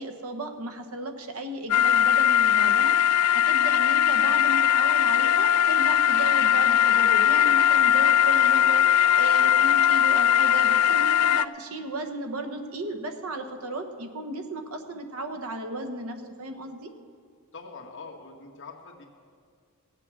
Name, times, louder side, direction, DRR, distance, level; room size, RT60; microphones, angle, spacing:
voice 1, 0.0-16.9, right 1 dB, 70° right, 6 dB, 1.1 m, -35 dB
sound 1, 1.7-11.4, left 9 dB, 85° left, 0.3 m, -20 dB
voice 2, 17.5-19.0, left 4 dB, 55° left, -1 dB, 1.7 m, -43 dB
17.0 x 7.7 x 6.3 m, 2.1 s
head